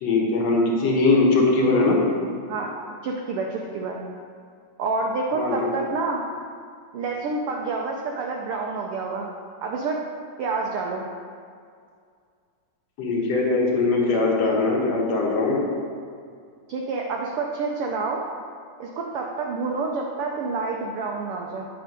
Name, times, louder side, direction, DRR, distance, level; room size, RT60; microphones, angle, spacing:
voice 1, 0.0-2.0 5.3-5.8 13.0-15.6, left 3 dB, 65° left, -2 dB, 2.2 m, -21 dB
voice 2, 3.0-4.0 4.8-6.2 6.9-9.3 9.6-10.0 10.4-11.0 16.7-18.3 18.8-21.6, right 4 dB, 85° right, 0 dB, 1.2 m, -28 dB
9.5 x 4.5 x 5.2 m, 2.2 s
omnidirectional pair, 3.3 m